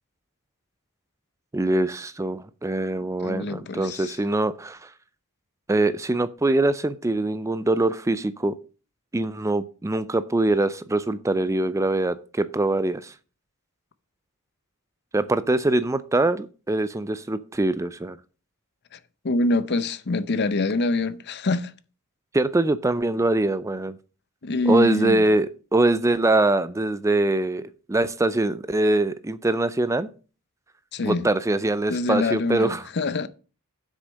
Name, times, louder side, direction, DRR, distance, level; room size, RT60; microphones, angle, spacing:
voice 1, 1.5-4.9 5.7-8.5 9.1-13.1 15.1-18.2 22.3-24.0 24.7-30.1 31.0-32.8, right 2 dB, 15° right, 0.4 m, -23 dB
voice 2, 3.2-4.2 18.9-19.0 19.2-21.7 24.4-25.2 30.9-31.3 31.9-33.3, left 2 dB, 50° left, 0.7 m, -25 dB
7.9 x 6.3 x 6.3 m
head